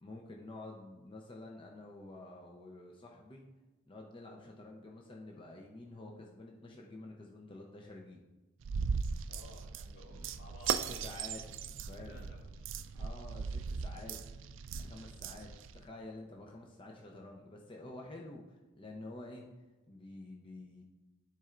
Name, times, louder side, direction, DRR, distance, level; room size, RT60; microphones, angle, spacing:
voice 1, 0.0-3.4 3.9-8.2 10.0-10.3 10.6-11.4 11.9-12.3 12.9-14.2 14.8-19.5 19.9-20.8, left 2 dB, 25° left, -1 dB, 0.6 m, -49 dB
sound 1, 8.6-15.8, right 6 dB, 80° right, 0.4 m, -38 dB
voice 2, 9.3-11.5 12.1-12.8, equal, 75° left, -3 dB, 2.1 m, -56 dB
12.5 x 4.4 x 2.5 m, 1.2 s
head